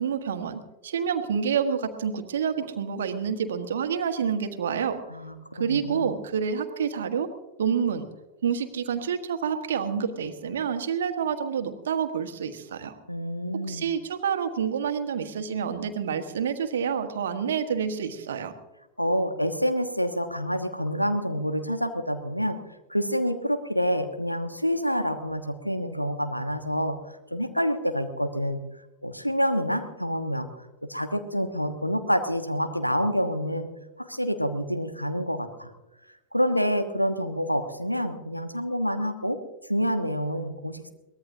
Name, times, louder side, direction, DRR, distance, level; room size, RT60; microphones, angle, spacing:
voice 1, 0.0-5.0 5.5-7.3 7.6-8.1 8.4-13.0 13.7-18.5, right 7 dB, 65° right, 8 dB, 1.4 m, -28 dB
voice 2, 5.1-6.1 13.1-13.9 19.0-22.6 22.9-27.0 27.3-28.6 29.0-30.5 30.8-33.7 34.0-35.7 36.3-39.4 39.7-40.9, equal, 90° left, 8 dB, 1.2 m, -27 dB
23.0 x 18.5 x 2.7 m, 1.0 s
figure-of-eight pair, 90°, 0 cm